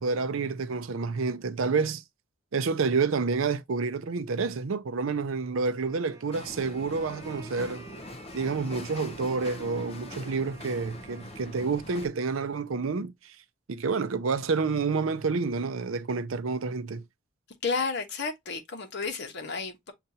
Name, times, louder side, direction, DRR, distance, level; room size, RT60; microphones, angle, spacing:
voice 1, 0.0-2.0 2.5-7.9 8.3-13.3 13.7-17.0, right 4 dB, 80° right, 0.5 m, -29 dB
Wind instrument woodwind instrument, 5.8-12.0, right 3 dB, 15° right, 0.8 m, -50 dB
sound 1, 6.3-12.1, left 1 dB, 30° left, 0.6 m, -43 dB
voice 2, 17.6-19.9, left 4 dB, 60° left, 1.1 m, -32 dB
6.6 x 2.4 x 2.7 m
head